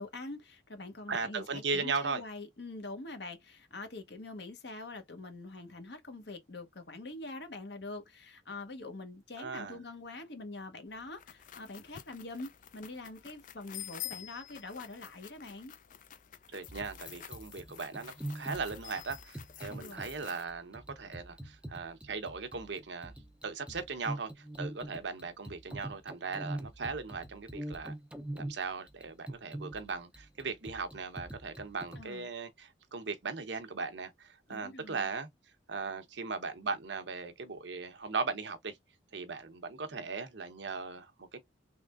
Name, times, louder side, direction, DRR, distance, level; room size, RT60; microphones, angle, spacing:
voice 1, 0.0-15.7 19.7-20.1 32.0-32.3 34.5-35.1, left 2 dB, 60° left, 1.0 m, -44 dB
voice 2, 1.1-2.2 9.4-9.8 16.5-23.1 23.4-27.9 28.3-35.3 35.7-38.8 39.1-41.4, right 4 dB, 70° right, 0.8 m, -38 dB
sound 1, 10.9-20.4, left 12 dB, 45° left, 0.4 m, -49 dB
sound 2, 16.7-32.0, right 1 dB, 5° right, 0.5 m, -43 dB
3.6 x 3.2 x 2.4 m
head